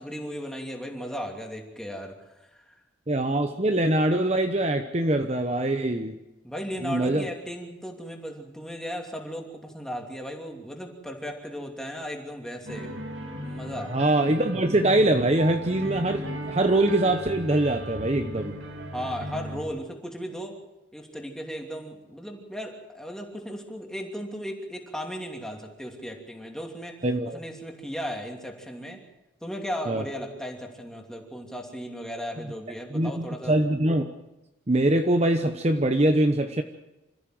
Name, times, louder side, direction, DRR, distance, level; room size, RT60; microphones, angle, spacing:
voice 1, 0.0-2.1 2.5-2.8 6.4-12.9 13.3-14.0 18.9-20.6 20.9-27.0 27.2-29.0 29.4-33.5, equal, 5° left, 1 dB, 2.8 m, -36 dB
voice 2, 3.1-6.2 6.8-7.3 13.9-18.6 27.0-27.4 29.9-30.0 32.9-34.0 34.7-36.6, right 1 dB, 35° right, 6 dB, 0.9 m, -23 dB
sound 1, 12.7-19.6, right 1 dB, 80° right, 3.1 m, -36 dB
27.0 x 14.5 x 7.8 m, 1.0 s
head